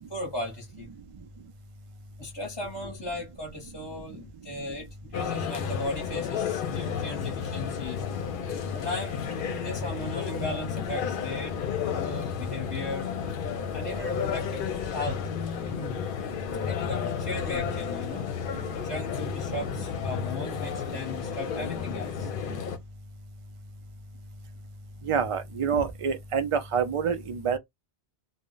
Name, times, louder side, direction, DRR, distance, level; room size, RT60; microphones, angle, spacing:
voice 1, 0.1-0.9 2.2-8.1 8.7-11.6 11.8-13.1 13.7-15.2 15.7-16.0 16.7-18.2 18.8-22.3, left 1 dB, 25° left, 0.7 m, -37 dB
sound 1, 5.1-22.8, left 7 dB, 65° left, 0.7 m, -32 dB
voice 2, 25.0-27.6, right 6 dB, 55° right, 0.3 m, -27 dB
2.1 x 2.0 x 3.7 m
omnidirectional pair, 1.1 m